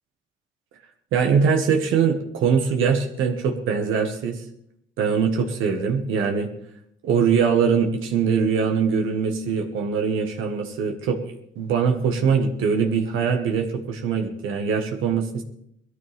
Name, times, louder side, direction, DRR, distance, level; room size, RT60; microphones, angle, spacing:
voice 1, 1.1-4.4 5.0-6.5 7.0-11.2 11.5-15.3, right 6 dB, 85° right, 3 dB, 1.6 m, -22 dB
20.5 x 13.5 x 3.6 m, 0.73 s
cardioid pair, 90°, 20 cm